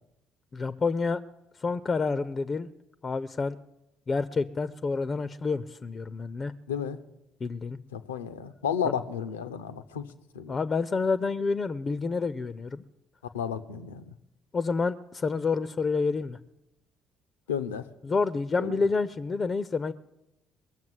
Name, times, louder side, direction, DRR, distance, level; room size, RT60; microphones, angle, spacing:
voice 1, 0.5-1.2 1.6-2.7 3.0-3.6 4.1-6.5 7.4-7.8 10.5-12.8 14.5-16.4 18.0-19.9, left 4 dB, 35° left, 15 dB, 0.5 m, -28 dB
voice 2, 6.7-7.0 7.9-10.1 10.3-10.6 13.3-14.1 17.5-17.9 18.6-18.7, left 8 dB, 80° left, 12 dB, 0.6 m, -32 dB
20.5 x 7.2 x 7.8 m, 0.88 s
figure-of-eight pair, 50°, 0 cm